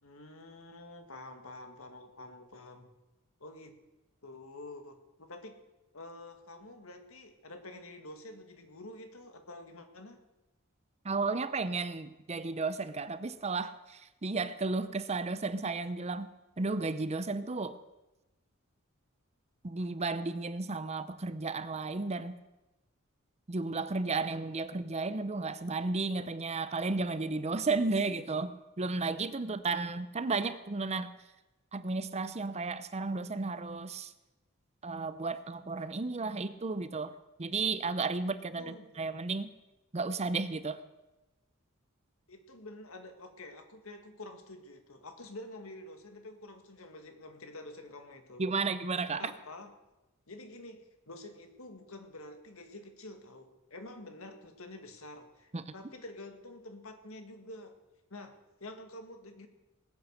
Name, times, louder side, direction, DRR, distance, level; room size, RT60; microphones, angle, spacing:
voice 1, 0.0-2.9 3.4-3.8 4.2-5.6 5.9-10.2 38.6-39.1 42.3-48.4 49.1-49.7 50.3-57.8 58.1-59.5, left 2 dB, 70° left, 6 dB, 1.8 m, -48 dB
voice 2, 11.0-16.3 16.6-17.8 19.6-22.4 23.5-31.1 31.7-34.1 34.8-37.1 37.4-39.5 39.9-40.8 48.4-49.3 55.5-55.6, right 3 dB, 30° right, 13 dB, 0.7 m, -33 dB
19.5 x 8.7 x 6.6 m, 1.0 s
head